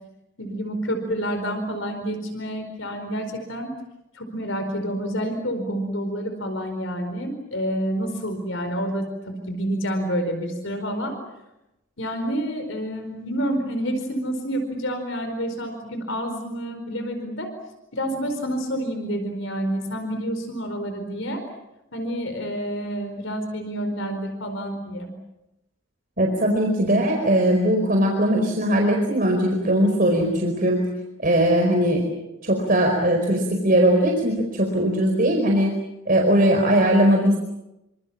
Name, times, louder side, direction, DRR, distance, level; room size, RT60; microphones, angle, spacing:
voice 1, 0.4-3.7 4.1-11.1 12.0-17.5 17.9-21.4 21.9-25.1, equal, 65° left, 7 dB, 4.7 m, -28 dB
voice 2, 26.2-30.8 31.2-32.0 32.4-35.7 36.1-37.4, right 1 dB, 45° right, 1 dB, 4.6 m, -20 dB
28.0 x 26.0 x 7.4 m, 0.92 s
head